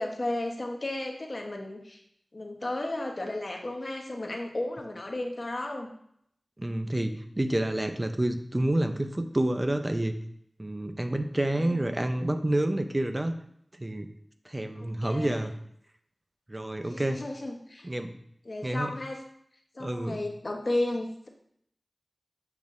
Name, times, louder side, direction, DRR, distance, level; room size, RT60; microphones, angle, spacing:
voice 1, 0.0-2.0 2.3-5.9 11.6-11.9 14.8-15.5 16.9-17.9 18.4-19.2 19.7-21.3, left 1 dB, 50° left, 2 dB, 1.1 m, -34 dB
voice 2, 6.6-10.2 10.6-13.3 13.8-14.1 14.5-15.5 16.5-17.2 17.8-18.2 18.6-18.9 19.8-20.2, right 1 dB, 30° right, 7 dB, 0.7 m, -28 dB
8.3 x 5.4 x 2.6 m, 0.69 s
wide cardioid pair, 55°, 0 cm